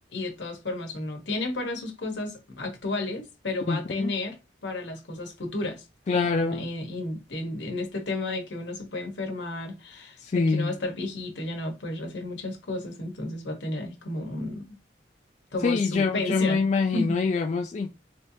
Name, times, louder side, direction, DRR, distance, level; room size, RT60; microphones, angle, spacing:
voice 1, 0.1-4.4 4.6-5.8 6.1-14.8 15.5-16.6 16.9-17.2, left 2 dB, 80° left, 1.1 m, -32 dB
voice 2, 3.7-4.1 6.1-6.7 10.2-10.7 15.6-17.9, left 4 dB, 40° left, 0.3 m, -25 dB
3.2 x 2.9 x 2.7 m
head